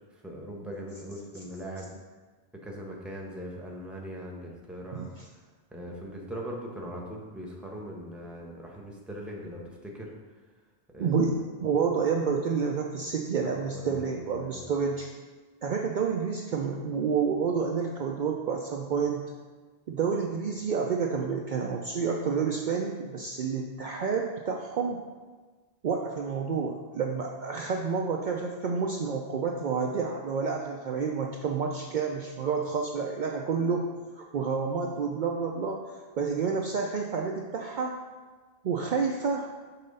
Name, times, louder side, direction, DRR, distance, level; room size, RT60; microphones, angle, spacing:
voice 1, 0.1-1.9 2.5-5.1 5.7-10.1 10.9-11.2 13.4-14.7, equal, ahead, -1 dB, 0.8 m, -40 dB
voice 2, 11.0-15.1 15.6-19.2 19.9-25.0 25.8-33.8 34.2-35.8 36.2-37.9 38.6-39.5, right 5 dB, 55° right, 0 dB, 0.6 m, -29 dB
5.7 x 3.7 x 5.3 m, 1.4 s
omnidirectional pair, 1.1 m